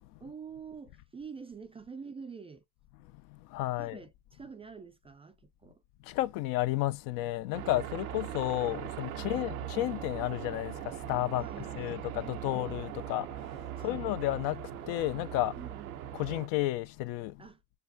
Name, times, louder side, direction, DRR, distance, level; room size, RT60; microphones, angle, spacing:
voice 1, 0.2-2.6 3.7-5.8 9.2-9.5 11.4-12.7 13.7-14.0 15.6-16.1 17.4-17.6, right 5 dB, 15° right, 0.4 m, -47 dB
voice 2, 3.3-4.0 6.0-11.4 11.8-15.5 16.2-17.4, left 16 dB, 55° left, 0.5 m, -32 dB
sound 1, 7.5-16.5, right 11 dB, 85° right, 0.7 m, -40 dB
6.6 x 2.3 x 2.6 m
hypercardioid pair, 80°, 42 cm